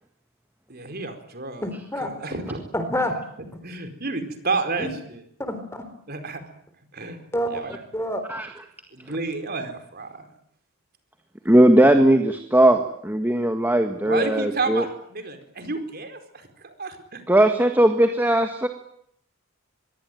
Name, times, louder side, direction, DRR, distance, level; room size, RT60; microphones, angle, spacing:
voice 1, 0.7-1.7 2.0-2.6 3.6-5.2 6.1-6.5 6.9-7.2 7.5-7.8 8.9-10.3 14.0-17.2, right 3 dB, 45° right, 7 dB, 4.6 m, -30 dB
voice 2, 1.6-2.4 2.7-3.2 4.8-4.9 5.5-5.8 7.3-8.2, equal, 10° left, 9 dB, 4.0 m, -28 dB
voice 3, 11.4-14.8 17.3-18.7, right 1 dB, 10° right, 6 dB, 1.8 m, -18 dB
24.5 x 22.5 x 9.3 m, 0.70 s
head